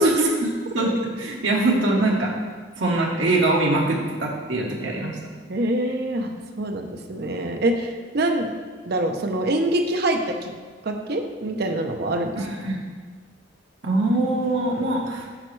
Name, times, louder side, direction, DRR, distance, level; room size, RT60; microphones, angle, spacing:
voice 1, 0.0-2.3 2.8-5.2 12.4-12.8 13.8-15.3, right 2 dB, 75° right, -1 dB, 1.1 m, -22 dB
voice 2, 5.5-8.5 8.9-10.5 10.8-12.3, right 1 dB, 55° right, 4 dB, 0.7 m, -25 dB
8.9 x 5.1 x 3.2 m, 1.5 s
head